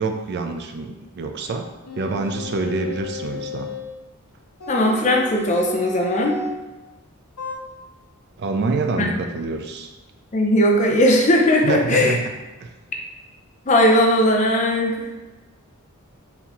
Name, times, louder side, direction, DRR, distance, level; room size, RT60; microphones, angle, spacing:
voice 1, 0.0-1.7 2.0-3.7 8.4-9.9 11.6-12.3 12.6-12.7, right 3 dB, 50° right, 6 dB, 0.3 m, -26 dB
sound 1, 1.9-3.9 4.6-6.6 7.4-7.6, left 2 dB, 85° left, 0.6 m, -33 dB
voice 2, 4.7-6.4 9.0-9.1 10.3-12.2 13.7-15.0, left 1 dB, 35° left, 1 dB, 0.5 m, -18 dB
4.0 x 2.7 x 2.9 m, 1.1 s
head